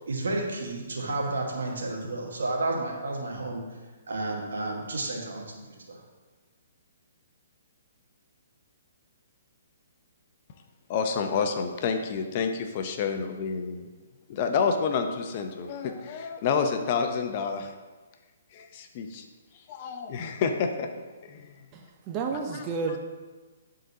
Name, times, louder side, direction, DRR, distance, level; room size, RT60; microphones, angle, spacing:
voice 1, 0.1-3.6 4.1-6.0, right 2 dB, 75° right, 0 dB, 1.4 m, -31 dB
voice 2, 10.9-13.9 14.3-17.7 18.5-19.2 19.7-20.9 21.2-21.5, left 5 dB, 40° left, 6 dB, 0.6 m, -29 dB
voice 3, 21.7-23.0, right 4 dB, 30° right, 3 dB, 0.6 m, -31 dB
10.5 x 3.9 x 2.8 m, 1.3 s
hypercardioid pair, 135°, 0 cm